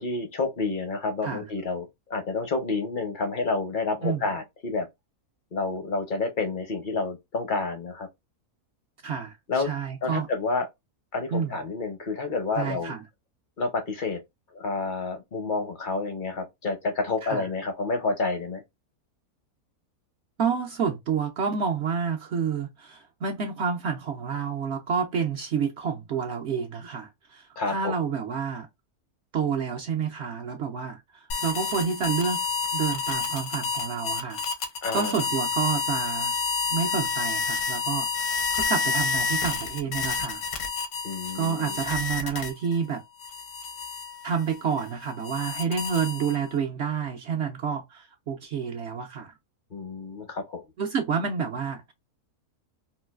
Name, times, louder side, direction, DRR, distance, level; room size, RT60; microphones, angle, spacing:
voice 1, 0.0-4.9 5.5-8.1 9.5-9.7 10.0-10.7 11.1-12.9 13.6-14.2 14.5-18.6 27.6-28.0 34.8-35.2 41.0-41.8 49.7-50.6, left 3 dB, 50° left, 0.6 m, -29 dB
voice 2, 9.0-10.3 11.3-11.6 12.6-13.0 17.2-17.5 20.4-28.7 29.3-32.4 32.7-34.4 34.9-36.3 36.7-40.4 41.3-43.0 44.2-49.3 50.8-51.9, right 6 dB, 65° right, 0.7 m, -29 dB
sound 1, 31.3-42.8 43.2-46.6, left 4 dB, 80° left, 1.3 m, -29 dB
3.7 x 2.3 x 2.3 m
omnidirectional pair, 1.6 m